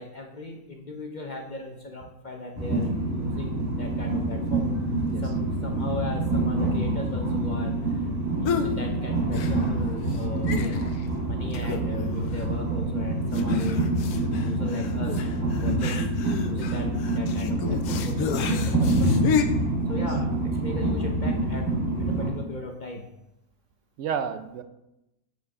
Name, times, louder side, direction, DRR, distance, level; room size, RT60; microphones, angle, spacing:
voice 1, 0.0-4.7 5.2-8.1 8.4-10.7 11.2-13.9 14.4-16.0 16.4-19.2 19.9-21.7 22.0-23.1, left 3 dB, 45° left, 2 dB, 0.6 m, -38 dB
Train, 2.6-22.3, right 2 dB, 10° right, 1.9 m, -26 dB
sound 1, 8.4-8.7 9.3-9.9 10.1-10.2 10.5-11.0 11.5-12.0 12.3-12.4 13.3-19.4, left 7 dB, 85° left, 1.2 m, -31 dB
voice 2, 24.0-24.6, right 7 dB, 65° right, 10 dB, 0.8 m, -32 dB
8.3 x 4.6 x 4.8 m, 0.91 s
omnidirectional pair, 1.5 m